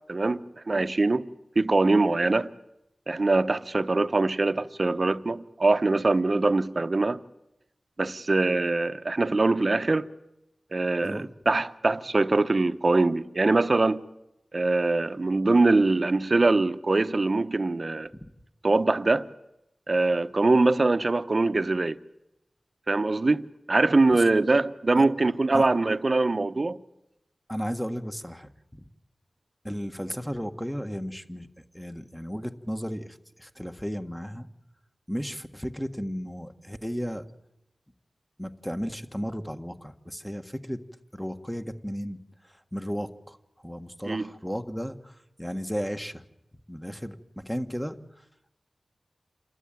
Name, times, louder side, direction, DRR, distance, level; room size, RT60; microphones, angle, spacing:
voice 1, 0.1-1.3 1.6-2.5 3.1-7.2 8.0-10.1 10.7-14.1 14.5-18.1 18.6-19.3 19.9-22.0 22.9-26.8 44.1-44.3, right 3 dB, 50° right, 0.9 m, -23 dB
voice 2, 27.5-28.8 29.6-31.5 31.7-34.5 35.1-37.3 38.4-40.8 41.1-42.2 42.7-43.4 43.6-46.2 46.7-48.0, equal, 5° left, 1.6 m, -34 dB
28.0 x 12.5 x 9.2 m
cardioid pair, 45°, 0 cm